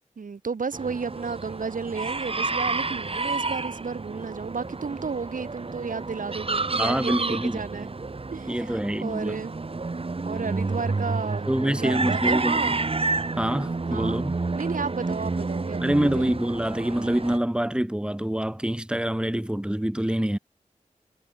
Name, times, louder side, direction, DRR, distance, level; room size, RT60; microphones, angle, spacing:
voice 1, 0.2-7.9 8.3-9.5 10.2-12.8 13.9-14.2 14.5-16.3, right 5 dB, 85° right, 3.1 m, -32 dB
sound 1, 0.7-17.4, right 3 dB, 45° right, 2.3 m, -30 dB
voice 2, 6.8-7.6 8.5-9.4 11.5-12.8 13.4-14.4 15.8-20.4, right 1 dB, 5° right, 2.2 m, -26 dB
wide cardioid pair, 95°, 13 cm